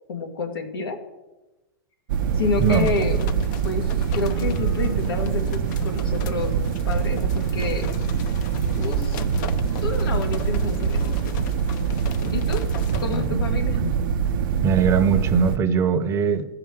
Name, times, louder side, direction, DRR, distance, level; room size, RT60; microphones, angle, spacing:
voice 1, 0.1-1.0 2.3-3.2 3.6-7.9 8.8-9.2 9.8-11.3 12.3-12.6 13.0-13.8, left 4 dB, 90° left, 5 dB, 2.0 m, -29 dB
sound 1, 2.1-15.6, right 7 dB, 65° right, 0.8 m, -24 dB
sound 2, 2.4-13.3, left 7 dB, 55° left, 0.8 m, -40 dB
voice 2, 14.6-16.5, right 6 dB, 25° right, 8 dB, 0.9 m, -21 dB
14.5 x 4.9 x 7.6 m, 1.1 s
hypercardioid pair, 140°, 12 cm